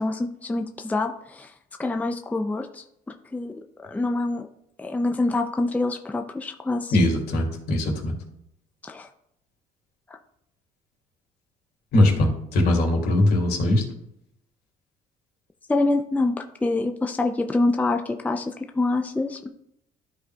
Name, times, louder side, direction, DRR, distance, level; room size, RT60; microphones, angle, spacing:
voice 1, 0.0-1.5 1.8-2.8 3.3-3.5 3.9-4.5 4.8-6.9 8.8-9.1 15.7-16.3 16.6-18.4 18.8-19.5, left 2 dB, 10° left, 5 dB, 0.5 m, -25 dB
voice 2, 6.9-8.1 11.9-13.8, left 1 dB, 70° left, 0 dB, 2.5 m, -21 dB
13.0 x 4.8 x 2.3 m, 0.76 s
cardioid pair, 110°, 17 cm